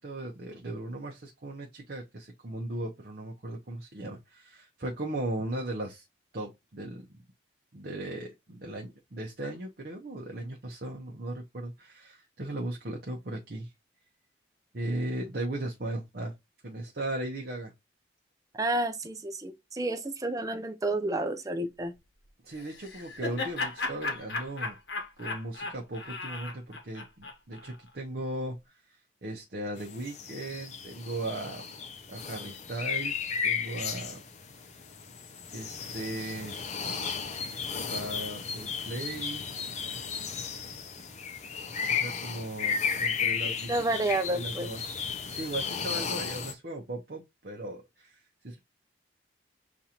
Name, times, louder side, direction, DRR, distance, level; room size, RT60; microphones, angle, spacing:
voice 1, 0.0-6.0 6.3-7.0 7.7-13.7 14.7-16.3 16.6-17.7 22.4-24.8 25.2-28.6 29.2-31.7 32.1-34.2 35.5-36.6 37.9-39.5 41.9-44.8 45.3-48.2 48.4-48.6, right 1 dB, 55° right, 0.7 m, -37 dB
voice 2, 18.5-21.9 43.5-44.7, right 2 dB, 20° right, 0.5 m, -30 dB
Laughter, 22.6-27.7, left 3 dB, 60° left, 1.0 m, -36 dB
sound 1, 29.8-46.5, left 6 dB, 35° left, 0.6 m, -34 dB
7.1 x 2.5 x 2.8 m
head